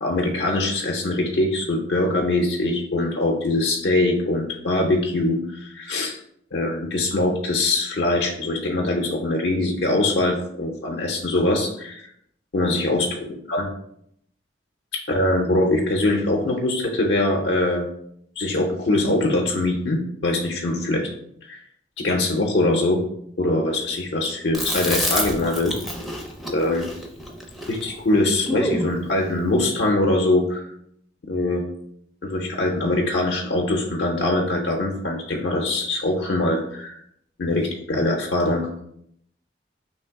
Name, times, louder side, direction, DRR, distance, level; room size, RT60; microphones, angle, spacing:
voice 1, 0.0-6.2 6.5-12.1 12.5-13.2 13.5-13.7 14.9-17.8 18.4-21.1 21.4-21.6 22.0-23.0 23.4-25.7 26.5-26.9 27.7-30.7 31.3-31.6 32.2-37.0 37.4-38.7, left 2 dB, 70° left, 0 dB, 0.6 m, -22 dB
Chewing mastication, 24.5-28.9, equal, ahead, 0.5 m, -28 dB
3.2 x 2.8 x 4.5 m, 0.72 s
head